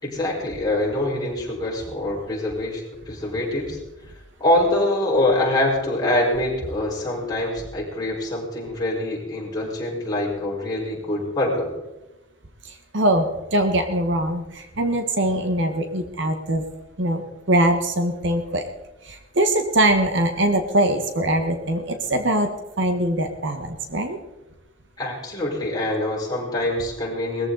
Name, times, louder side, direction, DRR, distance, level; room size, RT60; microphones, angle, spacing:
voice 1, 0.0-3.8 4.4-11.7 25.0-27.5, left 1 dB, 20° left, -5 dB, 5.1 m, -24 dB
voice 2, 12.6-16.6 17.0-17.2 17.5-18.7 19.0-22.5 22.8-24.2, right 1 dB, 65° right, 7 dB, 1.4 m, -22 dB
20.5 x 14.5 x 4.0 m, 1.0 s
head